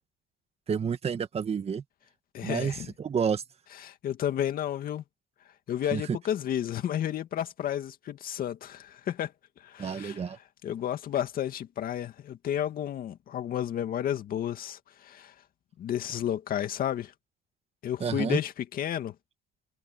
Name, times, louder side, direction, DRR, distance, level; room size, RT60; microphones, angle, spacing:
voice 1, 0.7-1.8 2.4-3.4 5.9-6.2 9.8-10.4 18.0-18.4, right 6 dB, 35° right, 1.9 m, -29 dB
voice 2, 2.3-2.9 3.8-5.0 5.7-9.3 9.6-10.2 10.6-15.3 15.8-17.1 17.8-19.1, left 10 dB, 60° left, 2.1 m, -32 dB
cardioid pair, 110°, 17 cm